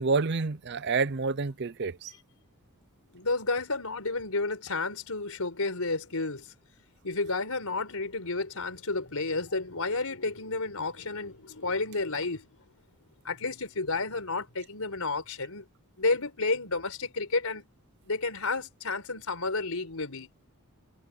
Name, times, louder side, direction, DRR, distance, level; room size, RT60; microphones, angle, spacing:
voice 1, 0.0-2.1, right 4 dB, 50° right, 0.6 m, -28 dB
voice 2, 3.1-6.5 7.0-12.5 13.2-15.7 16.0-17.7 18.1-20.3, left 3 dB, 75° left, 4.4 m, -31 dB
head